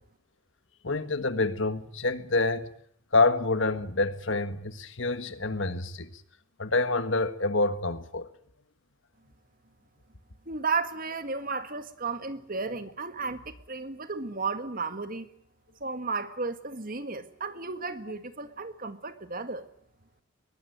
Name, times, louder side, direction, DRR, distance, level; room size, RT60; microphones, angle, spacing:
voice 1, 0.8-2.7 3.1-6.1 6.6-8.3, left 3 dB, 60° left, 1.7 m, -27 dB
voice 2, 10.4-15.3 15.8-19.6, right 4 dB, 40° right, 1.9 m, -33 dB
22.5 x 20.0 x 9.5 m
head